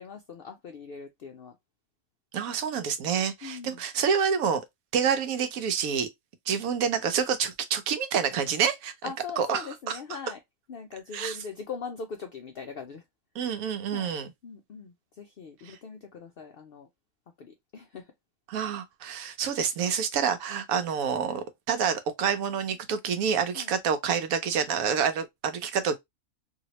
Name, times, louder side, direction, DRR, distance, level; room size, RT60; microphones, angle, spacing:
voice 1, 0.0-1.6 3.4-3.8 9.0-10.4 10.7-13.0 13.9-14.2 14.4-16.9 17.4-18.1 23.5-23.7, left 5 dB, 65° left, 0.6 m, -41 dB
voice 2, 2.3-4.6 4.9-6.1 6.5-8.9 9.4-10.0 11.1-11.4 13.4-14.3 15.7-15.8 18.5-26.0, right 7 dB, 80° right, 1.1 m, -28 dB
2.9 x 2.8 x 2.9 m
omnidirectional pair, 1.5 m